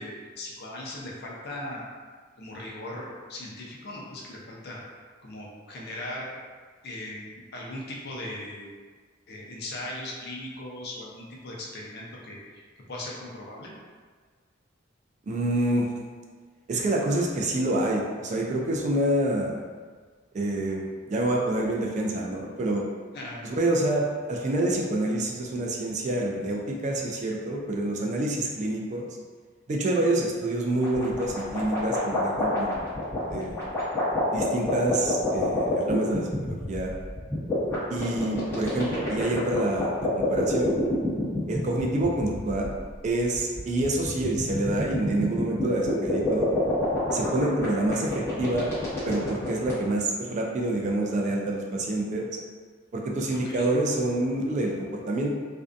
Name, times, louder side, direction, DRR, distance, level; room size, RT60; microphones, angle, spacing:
voice 1, 0.0-1.9 2.4-4.8 5.2-6.3 6.8-8.7 9.3-12.6 12.9-13.7 23.1-23.4 53.3-53.7, left 1 dB, 55° left, -3 dB, 0.5 m, -38 dB
voice 2, 15.3-15.9 16.7-19.6 20.3-22.8 23.4-29.1 29.7-33.0 33.3-33.6 34.3-36.9 37.9-40.7 41.5-42.7 43.0-46.5 47.1-48.7 49.0-52.3 52.9-55.3, right 1 dB, 35° right, -1 dB, 0.3 m, -27 dB
sound 1, 30.8-49.7, left 2 dB, 15° left, 0.8 m, -29 dB
2.5 x 2.2 x 2.5 m, 1.5 s
head